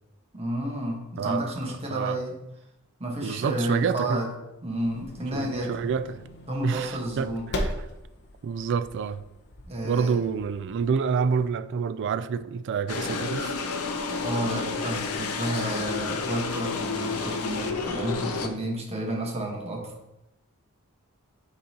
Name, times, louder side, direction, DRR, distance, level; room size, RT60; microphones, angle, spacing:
voice 1, 0.3-2.4 3.0-4.3 4.6-5.7 6.5-7.5 9.7-10.2 14.1-19.9, right 1 dB, 30° right, 0 dB, 1.2 m, -31 dB
voice 2, 1.2-1.5 1.9-2.2 3.2-4.2 5.3-6.2 6.6-7.7 8.4-9.2 9.8-13.6, right 6 dB, 55° right, 12 dB, 0.3 m, -28 dB
sound 1, 4.8-11.5, equal, 50° left, 0.8 m, -39 dB
sound 2, 12.9-18.5, left 4 dB, 80° left, 0.6 m, -30 dB
9.2 x 4.0 x 2.8 m, 0.91 s
head